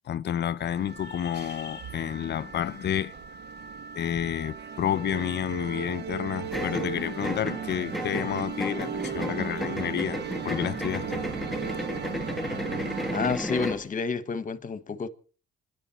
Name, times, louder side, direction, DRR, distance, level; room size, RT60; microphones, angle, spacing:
voice 1, 0.1-3.1 3.9-10.2 10.4-11.1, left 10 dB, 60° left, 0.7 m, -30 dB
sound 1, 0.6-13.4, right 7 dB, 60° right, 1.5 m, -37 dB
sound 2, 6.5-13.9, equal, ahead, 1.4 m, -34 dB
voice 2, 13.1-15.1, left 5 dB, 40° left, 1.4 m, -29 dB
27.5 x 11.0 x 4.4 m
cardioid pair, 90°, 20 cm